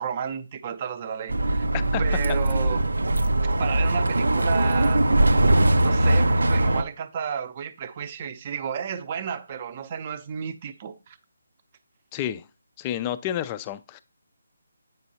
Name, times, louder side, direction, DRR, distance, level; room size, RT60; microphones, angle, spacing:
voice 1, 0.0-1.7 2.0-2.9 3.4-5.0 5.8-11.2, right 7 dB, 35° right, 0.6 m, -32 dB
Bus, 1.3-6.8, right 1 dB, 85° right, 0.5 m, -21 dB
voice 2, 12.1-12.4 12.8-14.0, left 11 dB, 20° left, 0.3 m, -30 dB
7.9 x 5.3 x 2.8 m
figure-of-eight pair, 155°, 0 cm